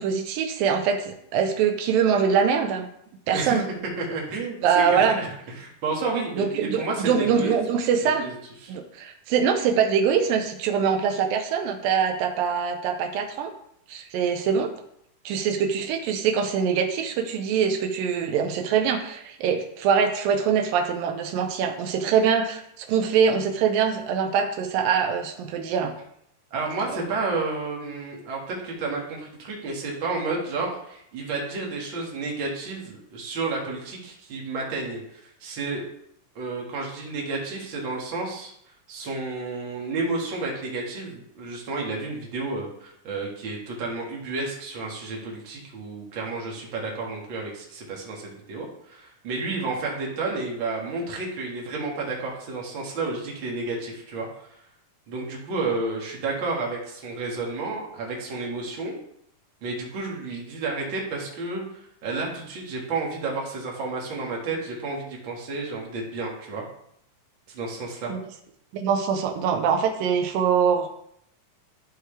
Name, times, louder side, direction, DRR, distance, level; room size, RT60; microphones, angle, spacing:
voice 1, 0.0-2.9 3.3-3.7 4.6-5.2 6.4-8.3 8.7-13.5 13.9-14.7 15.3-26.0 68.1-68.2 68.7-70.9, right 7 dB, 85° right, 5 dB, 2.5 m, -23 dB
voice 2, 4.0-7.6 8.2-8.3 8.6-8.8 26.5-35.8 36.4-38.5 38.9-54.6 55.1-59.0 59.6-66.6 67.5-68.1, right 3 dB, 40° right, -2 dB, 2.1 m, -31 dB
12.0 x 4.7 x 3.3 m, 0.72 s
omnidirectional pair, 3.9 m